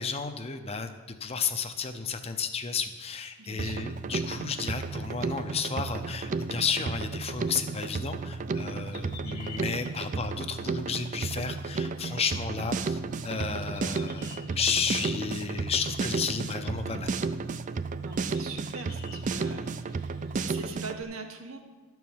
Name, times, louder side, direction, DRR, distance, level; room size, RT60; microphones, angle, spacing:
voice 1, 0.0-17.1, left 5 dB, 30° left, 8 dB, 0.6 m, -32 dB
voice 2, 3.4-3.9 18.0-21.6, right 4 dB, 85° right, 5 dB, 1.2 m, -42 dB
Drum kit, 3.6-21.0, right 4 dB, 35° right, 0.3 m, -33 dB
sound 1, 8.6-20.7, left 6 dB, 45° left, 1.3 m, -52 dB
12.0 x 4.7 x 7.2 m, 1.3 s
head